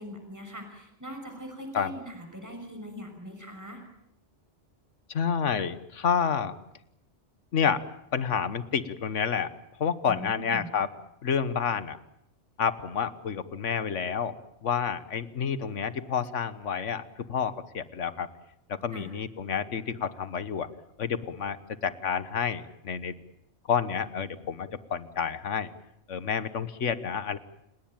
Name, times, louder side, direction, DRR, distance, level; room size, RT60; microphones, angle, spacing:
voice 1, 0.0-3.8 10.1-10.7 18.9-19.1, equal, 15° right, 5 dB, 5.8 m, -41 dB
voice 2, 5.1-6.5 7.5-7.8 8.1-9.5 9.8-10.9 11.2-12.0 12.6-14.4 14.6-18.3 18.7-20.7 21.0-21.6 21.8-23.1 23.7-25.7 26.1-27.4, left 7 dB, 85° left, 14 dB, 1.5 m, -29 dB
30.0 x 18.0 x 8.9 m, 0.80 s
omnidirectional pair, 1.2 m